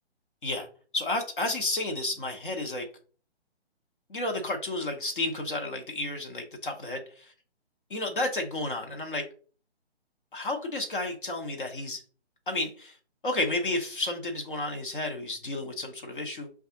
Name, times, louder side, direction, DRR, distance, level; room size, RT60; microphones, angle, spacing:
voice 1, 0.9-2.9 4.1-7.0 7.9-9.3 10.3-12.0 12.5-13.0 13.2-16.5, left 2 dB, 50° left, 3 dB, 0.9 m, -31 dB
5.7 x 2.4 x 2.7 m, 0.40 s
figure-of-eight pair, 140°, 33 cm